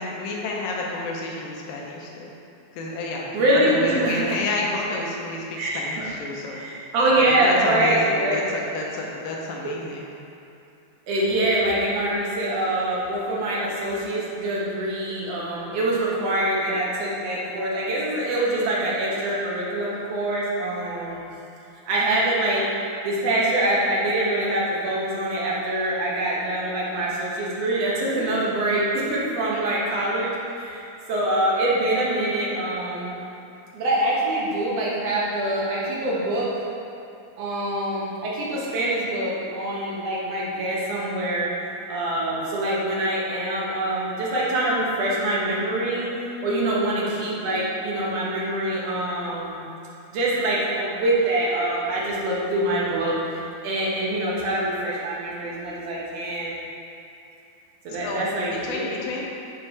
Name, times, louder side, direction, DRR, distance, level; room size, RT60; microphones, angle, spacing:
voice 1, 0.0-2.3 2.7-6.6 7.2-10.1 29.5-29.6 58.0-59.2, left 2 dB, 75° left, -2 dB, 2.5 m, -30 dB
voice 2, 3.3-4.2 5.6-6.1 6.5-8.4 9.6-9.7 11.1-21.2 21.9-22.6 23.0-30.3 30.6-33.1 33.7-36.5 37.4-41.5 41.9-46.1 46.4-49.6 50.1-56.5 57.8-59.0, right 1 dB, 60° right, -6 dB, 1.8 m, -24 dB
6.5 x 4.7 x 4.8 m, 2.7 s
omnidirectional pair, 4.2 m